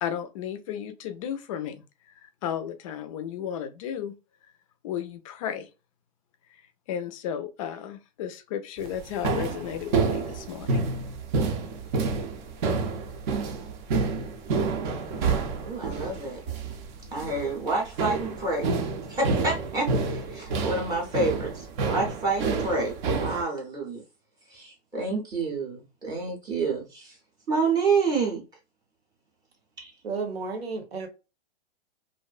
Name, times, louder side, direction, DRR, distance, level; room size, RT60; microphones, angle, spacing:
voice 1, 0.0-4.2 4.8-5.7 6.5-6.6 6.9-10.8, left 9 dB, 35° left, 0.4 m, -34 dB
sound 1, 8.8-23.4, right 4 dB, 50° right, 0.6 m, -29 dB
voice 2, 15.6-16.4 17.1-18.7 19.1-21.5 21.8-22.9 23.2-24.0 24.5-27.1 27.5-28.4 29.8-29.9, right 3 dB, 15° right, 0.6 m, -28 dB
voice 3, 30.0-31.1, right 4 dB, 80° right, 1.0 m, -32 dB
2.5 x 2.1 x 2.3 m
hypercardioid pair, 140°, 31 cm